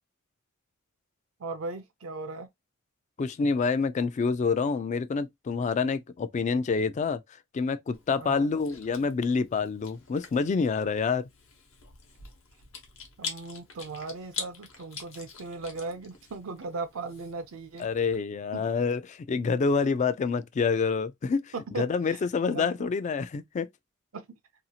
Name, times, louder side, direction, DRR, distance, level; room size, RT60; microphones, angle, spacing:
voice 1, 1.4-2.5 8.2-8.5 13.2-17.9 18.5-18.6 21.5-21.8 22.1-22.2 22.5-22.9 24.1-24.2, right 3 dB, 80° right, 0.6 m, -37 dB
voice 2, 3.2-7.2 7.5-11.3 17.8-23.7, left 5 dB, 35° left, 0.3 m, -27 dB
Chewing mastication, 7.9-18.2, left 5 dB, 70° left, 0.9 m, -45 dB
2.7 x 2.4 x 2.7 m
head